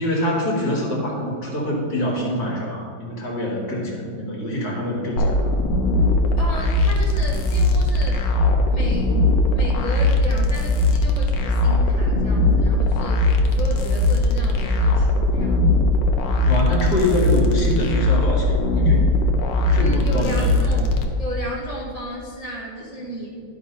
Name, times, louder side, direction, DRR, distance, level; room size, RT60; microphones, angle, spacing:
voice 1, 0.0-5.5 16.4-19.0 19.6-20.4, left 1 dB, 50° left, -2 dB, 2.0 m, -25 dB
sound 1, 5.2-21.1, left 2 dB, 65° left, 1.3 m, -19 dB
voice 2, 6.4-8.3 8.7-9.2 9.5-15.7 19.7-23.3, equal, 60° right, -4 dB, 0.4 m, -33 dB
11.0 x 4.2 x 5.3 m, 2.4 s
omnidirectional pair, 2.3 m